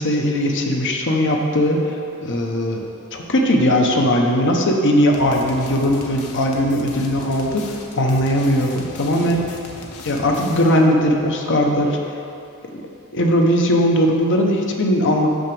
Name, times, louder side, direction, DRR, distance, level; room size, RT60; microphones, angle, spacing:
voice 1, 0.0-2.8 3.1-9.6 10.0-12.0 12.7-12.8 13.1-15.3, equal, 55° left, 1 dB, 1.0 m, -19 dB
sound 1, 5.1-10.9, left 2 dB, 85° left, 1.0 m, -38 dB
6.3 x 5.9 x 7.0 m, 2.6 s
head